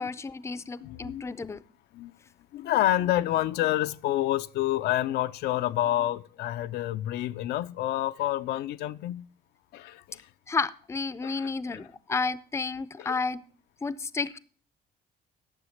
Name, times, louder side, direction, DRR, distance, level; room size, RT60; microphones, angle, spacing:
voice 1, 0.0-1.6 10.5-13.4 13.8-14.4, left 4 dB, 15° left, 0.5 m, -31 dB
voice 2, 0.8-1.3 1.9-2.1 2.5-9.3 9.7-10.3 11.2-11.8 13.0-13.2, left 14 dB, 75° left, 0.5 m, -28 dB
9.9 x 7.0 x 6.4 m
cardioid pair, 110°, 17 cm